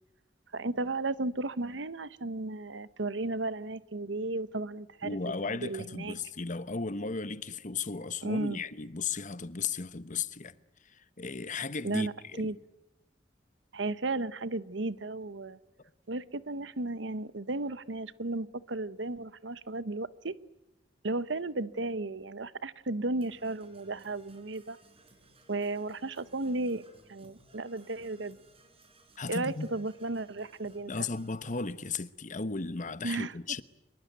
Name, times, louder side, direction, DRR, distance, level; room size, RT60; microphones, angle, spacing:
voice 1, 0.5-5.2 5.4-6.2 8.2-8.6 11.8-12.6 13.7-15.6 16.1-20.3 21.0-24.8 25.5-28.4 29.3-30.9 33.0-33.3, right 2 dB, 85° right, 1.0 m, -34 dB
voice 2, 5.0-10.6 10.9-12.5 29.2-29.7 30.9-33.6, left 4 dB, 45° left, 1.0 m, -35 dB
Percussion / Brass instrument, 23.2-31.7, right 2 dB, 35° right, 6.2 m, -60 dB
26.0 x 22.5 x 9.4 m
head